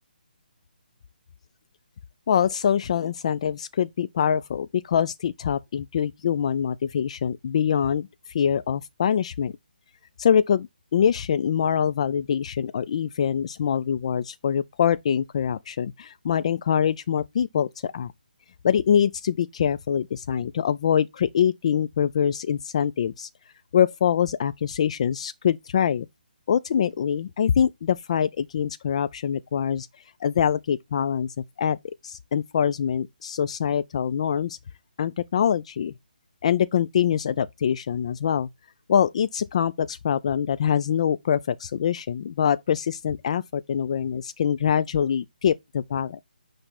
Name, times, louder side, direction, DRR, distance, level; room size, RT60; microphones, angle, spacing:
voice 1, 2.3-9.5 10.2-18.1 18.6-23.3 23.7-26.1 26.5-29.9 30.2-31.8 32.0-34.6 35.0-35.9 36.4-38.5 38.9-46.2, left 8 dB, 40° left, 0.4 m, -24 dB
9.8 x 3.3 x 4.2 m
figure-of-eight pair, 150°, 5 cm